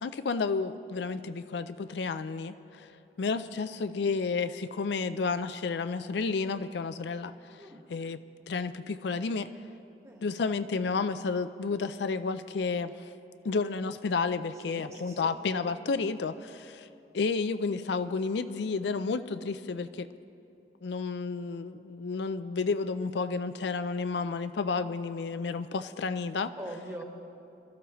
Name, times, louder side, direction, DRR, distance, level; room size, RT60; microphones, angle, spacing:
voice 1, 0.0-2.9 3.2-7.6 7.9-8.2 8.5-9.5 10.2-13.1 13.4-16.9 17.1-20.1 20.8-26.5, left 4 dB, 70° left, 11 dB, 0.4 m, -31 dB
voice 2, 10.0-10.4 14.5-15.6 26.5-27.0, right 1 dB, 15° right, 0 dB, 1.4 m, -43 dB
24.0 x 13.5 x 3.1 m, 2.7 s
head